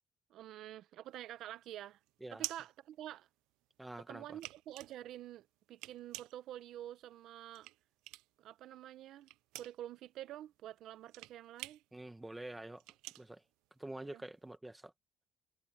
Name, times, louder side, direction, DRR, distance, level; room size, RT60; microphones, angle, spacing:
voice 1, 0.3-2.0 2.3-3.3 4.0-7.7 8.4-9.3 9.6-11.8 14.1-14.2, right 12 dB, 55° right, 0.9 m, -48 dB
sound 1, 1.1-3.7 4.1-8.5 8.8-14.3, right 20 dB, 85° right, 0.3 m, -48 dB
voice 2, 3.8-4.4 11.9-12.8 13.2-13.4 13.8-14.9, right 1 dB, 5° right, 1.2 m, -47 dB
cardioid pair, 165°, 0 cm